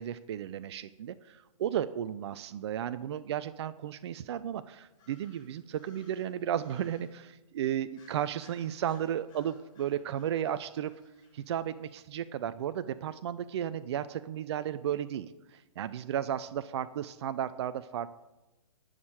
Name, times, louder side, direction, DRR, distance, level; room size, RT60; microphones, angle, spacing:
voice 1, 0.0-10.9 11.3-18.2, right 10 dB, 50° right, 14 dB, 0.5 m, -34 dB
sound 1, 4.9-7.2 7.9-11.9, left 3 dB, 20° left, 4.7 m, -63 dB
11.0 x 6.4 x 8.9 m, 1.0 s
hypercardioid pair, 135°, 18 cm